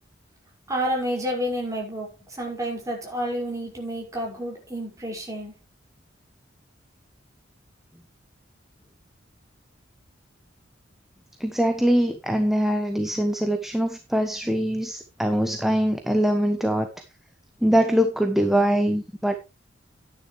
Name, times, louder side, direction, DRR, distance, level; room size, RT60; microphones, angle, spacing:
voice 1, 0.7-2.1 2.4-5.5, equal, 15° right, 5.8 m, -29 dB
voice 2, 11.4-16.9 17.6-19.4, equal, ahead, 1.0 m, -23 dB
12.0 x 10.0 x 3.3 m
head